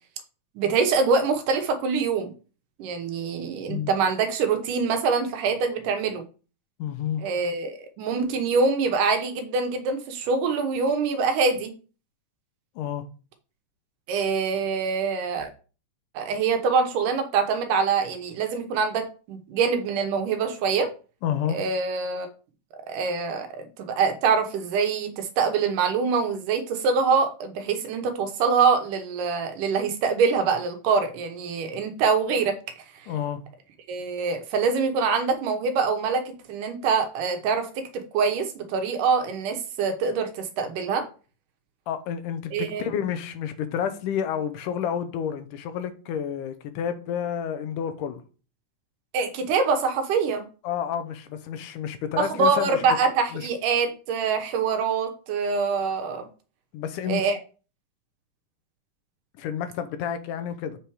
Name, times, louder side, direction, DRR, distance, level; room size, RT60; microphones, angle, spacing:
voice 1, 0.6-2.3 2.8-6.2 7.2-11.7 14.1-15.5 16.1-20.9 21.5-22.3 22.9-32.6 32.9-33.1 33.9-41.1 42.5-42.9 49.1-50.5 52.2-56.3 57.1-57.4, right 5 dB, 80° right, 2.6 m, -24 dB
voice 2, 6.8-7.2 12.8-13.1 21.2-21.6 33.1-33.4 41.9-48.2 50.6-52.8 53.3-53.5 56.7-57.2 59.4-60.8, left 8 dB, 80° left, 2.3 m, -30 dB
8.0 x 4.6 x 4.8 m
omnidirectional pair, 3.7 m